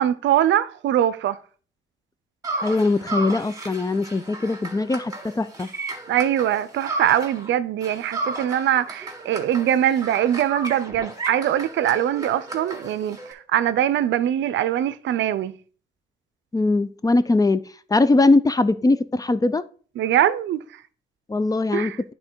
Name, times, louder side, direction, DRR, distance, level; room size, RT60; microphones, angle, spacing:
voice 1, 0.0-1.4 6.1-15.5 20.0-20.8 21.7-22.0, right 11 dB, 70° right, 0.5 m, -22 dB
sound 1, 2.4-7.5 7.8-13.3, right 2 dB, 20° right, 1.9 m, -33 dB
voice 2, 2.6-5.7 16.5-17.6 17.9-19.6 21.3-21.9, left 2 dB, 20° left, 0.4 m, -21 dB
9.6 x 3.8 x 4.6 m
cardioid pair, 90°, 20 cm